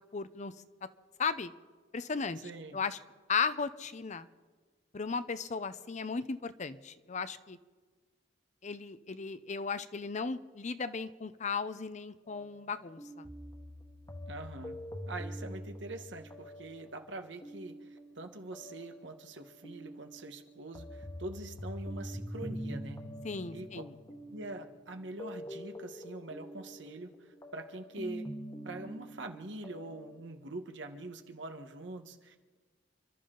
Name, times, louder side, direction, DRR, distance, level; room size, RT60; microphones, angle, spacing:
voice 1, 0.1-0.5 1.2-1.5 1.9-2.4 2.7-3.0 3.3-4.3 4.9-7.6 8.6-13.3 23.2-23.9, left 5 dB, 40° left, 13 dB, 0.6 m, -36 dB
voice 2, 2.4-2.8 14.3-14.8 15.1-23.0 23.5-23.8 24.3-28.3 28.6-32.4, right 2 dB, 85° right, 5 dB, 1.4 m, -44 dB
sound 1, 12.2-30.2, equal, 20° left, 1.3 m, -45 dB
29.5 x 12.0 x 3.9 m, 1.4 s
head